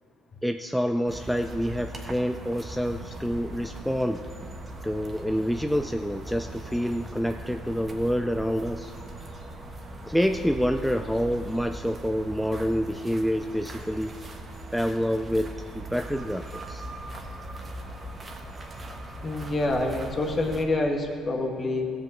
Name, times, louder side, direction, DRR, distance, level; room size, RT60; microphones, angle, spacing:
voice 1, 0.4-4.2 4.8-8.9 10.1-14.2 14.7-16.8, equal, ahead, 6 dB, 0.4 m, -27 dB
sound 1, 1.1-20.6, right 1 dB, 30° right, 1.3 m, -40 dB
voice 2, 19.2-21.9, left 2 dB, 35° left, 2 dB, 1.5 m, -27 dB
14.5 x 5.3 x 7.2 m, 2.4 s
supercardioid pair, 85°, 0 cm